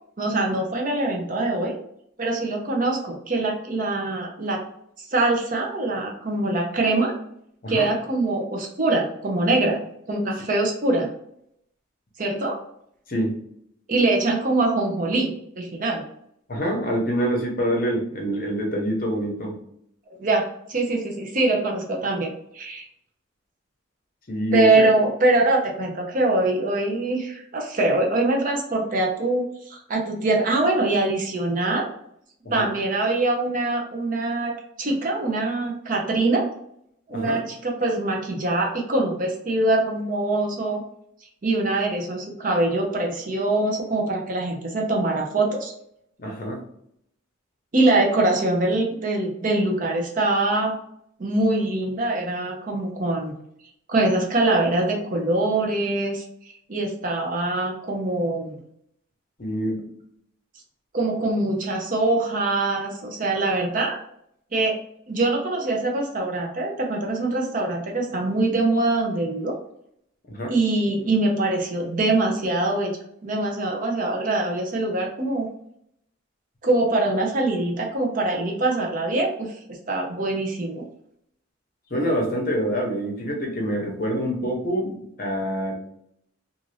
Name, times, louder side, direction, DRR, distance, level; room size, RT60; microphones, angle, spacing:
voice 1, 0.2-1.7 2.2-4.6 5.1-7.1 7.7-9.8 10.1-11.1 12.2-12.5 13.9-16.0 20.2-22.9 24.5-31.9 32.5-36.5 37.1-40.8 41.4-45.7 47.7-50.8 51.2-53.4 53.9-56.2 56.7-58.6 60.9-64.0 64.5-64.8 65.1-69.5 70.5-75.5 76.6-80.9, right 2 dB, 40° right, 0 dB, 0.6 m, -23 dB
voice 2, 16.5-19.6 24.3-24.9 32.6-32.7 37.1-37.4 46.2-46.6 59.4-59.9 70.3-70.5 81.9-85.8, equal, 45° left, 0 dB, 0.8 m, -26 dB
2.6 x 2.4 x 3.2 m, 0.71 s
head